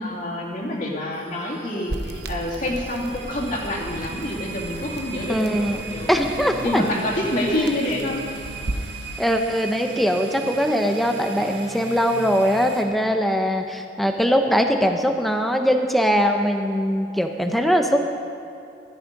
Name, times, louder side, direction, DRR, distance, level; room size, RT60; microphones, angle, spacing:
voice 1, 0.0-6.1 6.6-8.2, left 1 dB, 45° left, -4 dB, 3.0 m, -27 dB
sound 1, 1.1-12.8, right 4 dB, 80° right, 2.1 m, -37 dB
sound 2, 1.9-8.9, right 1 dB, 65° right, 1.0 m, -35 dB
voice 2, 5.3-5.8 6.1-6.9 7.5-7.8 9.2-18.0, equal, ahead, 4 dB, 1.0 m, -21 dB
17.0 x 12.5 x 5.4 m, 2.6 s
head